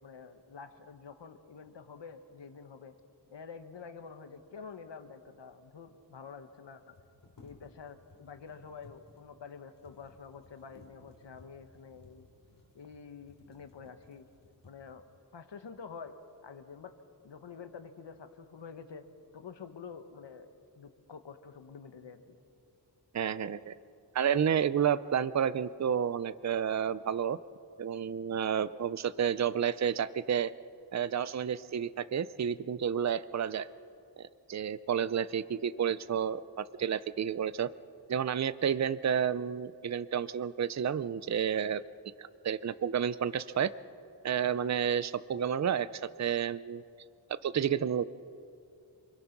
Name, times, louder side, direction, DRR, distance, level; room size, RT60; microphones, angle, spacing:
voice 1, 0.0-2.9 3.3-6.9 7.4-12.3 12.7-14.3 14.6-15.0 15.3-16.1 16.4-16.9 17.2-19.0 19.3-20.5 20.7-22.4, left 5 dB, 80° left, 8 dB, 1.5 m, -48 dB
sound 1, 6.7-15.1 15.7-15.9 16.3-16.9 17.3-17.8, left 2 dB, 50° left, 3.9 m, -60 dB
voice 2, 23.1-23.7 24.1-27.4 27.8-30.5 30.9-33.7 34.2-37.7 38.1-41.8 42.2-43.7 44.2-46.8 47.3-48.0, right 8 dB, 40° right, 16 dB, 0.5 m, -30 dB
28.0 x 21.5 x 6.0 m, 2.5 s
wide cardioid pair, 105°, 43 cm